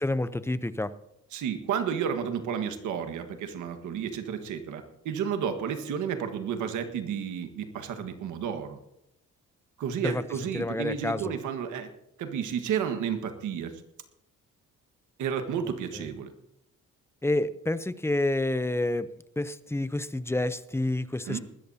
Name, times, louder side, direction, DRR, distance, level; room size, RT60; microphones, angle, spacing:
voice 1, 0.0-0.9 10.0-10.2 10.5-11.3 15.9-16.1 17.2-19.1 19.4-21.4, left 2 dB, 10° left, 14 dB, 0.6 m, -28 dB
voice 2, 1.3-8.8 9.8-11.9 12.2-13.7 15.2-16.3 21.3-21.4, right 7 dB, 80° right, 7 dB, 1.6 m, -31 dB
20.0 x 13.5 x 2.8 m, 0.82 s
cardioid pair, 90°, 30 cm